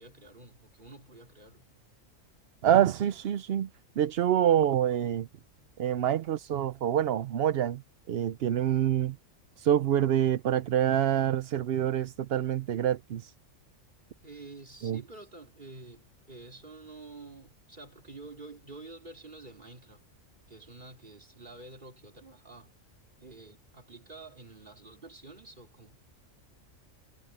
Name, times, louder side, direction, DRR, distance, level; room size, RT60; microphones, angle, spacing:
voice 1, 0.0-1.7 14.2-20.0 20.5-22.7 23.2-26.0, right 3 dB, 40° right, 3.4 m, -49 dB
voice 2, 2.6-3.7 4.0-5.3 5.8-7.8 8.1-9.2 9.6-13.3 14.8-15.0, right 10 dB, 60° right, 0.7 m, -26 dB
omnidirectional pair, 1.3 m